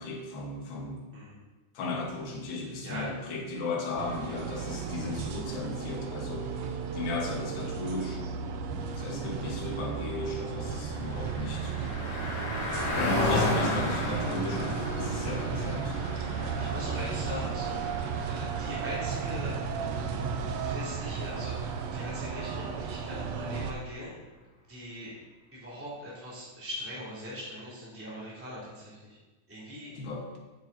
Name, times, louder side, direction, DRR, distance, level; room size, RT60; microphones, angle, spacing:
voice 1, 0.0-1.0 1.7-6.5 6.9-8.3 8.9-11.7 12.9-16.0 29.9-30.3, left 2 dB, 50° left, -2 dB, 1.7 m, -35 dB
voice 2, 2.5-3.3 16.1-16.3 16.6-17.8 18.3-19.6 20.6-24.2 24.7-25.1 25.5-29.2 29.5-29.9, equal, 5° right, -9 dB, 2.7 m, -41 dB
sound 1, 4.0-23.7, right 6 dB, 90° right, 1.4 m, -34 dB
Car passing by, 10.2-21.9, left 2 dB, 30° left, 3.6 m, -35 dB
8.7 x 7.9 x 4.1 m, 1.2 s
omnidirectional pair, 3.9 m